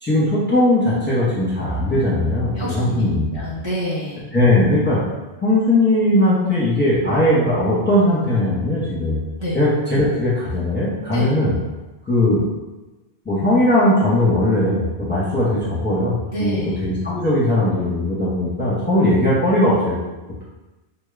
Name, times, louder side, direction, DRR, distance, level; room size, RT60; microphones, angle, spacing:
voice 1, 0.0-3.4 4.3-5.0 5.4-9.2 9.5-11.5 12.0-12.4 13.2-20.0, left 1 dB, 10° left, -9 dB, 0.8 m, -19 dB
voice 2, 2.5-3.0 3.3-4.2 9.4-9.6 11.1-11.3 16.3-16.7, right 1 dB, 30° right, -9 dB, 0.8 m, -26 dB
3.8 x 2.1 x 3.3 m, 1.1 s
omnidirectional pair, 1.1 m